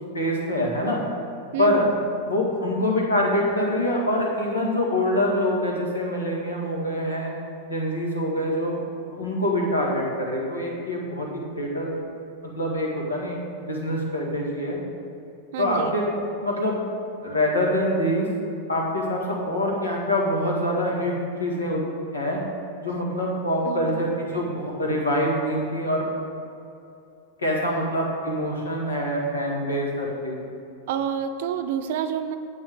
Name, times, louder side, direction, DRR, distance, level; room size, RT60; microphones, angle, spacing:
voice 1, 0.1-1.0 1.6-1.9 2.3-7.4 7.7-8.8 9.1-11.9 12.6-14.8 15.6-16.8 17.2-18.3 18.7-21.1 21.4-21.8 22.1-22.4 22.8-26.1 27.4-30.4, left 1 dB, 75° left, -2 dB, 1.7 m, -25 dB
voice 2, 1.5-1.9 15.5-15.9 23.7-24.1 30.9-32.4, right 8 dB, 50° right, 9 dB, 0.5 m, -28 dB
8.7 x 8.1 x 3.6 m, 2.6 s
figure-of-eight pair, 90°, 0 cm